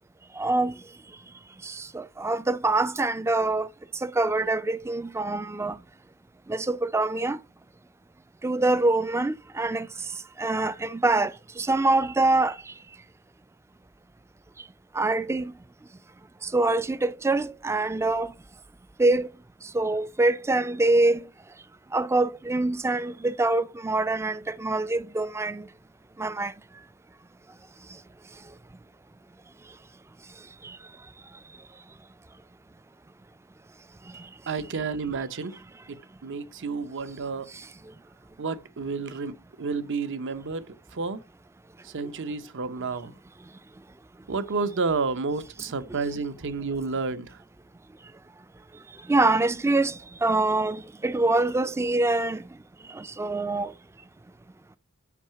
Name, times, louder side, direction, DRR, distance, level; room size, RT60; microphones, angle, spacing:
voice 1, 0.4-0.7 1.6-3.7 4.0-5.8 6.5-7.4 8.4-9.9 10.4-11.3 11.6-12.5 15.0-15.5 16.5-18.3 19.0-19.3 19.7-21.2 21.9-25.6 26.2-26.5 49.1-49.9 50.2-52.4 53.0-53.7, right 2 dB, 10° right, 0.3 m, -24 dB
voice 2, 34.5-35.5 35.9-36.0 36.2-37.5 38.4-41.2 41.8-43.1 44.3-47.4, right 4 dB, 55° right, 0.7 m, -30 dB
6.0 x 5.5 x 5.6 m
head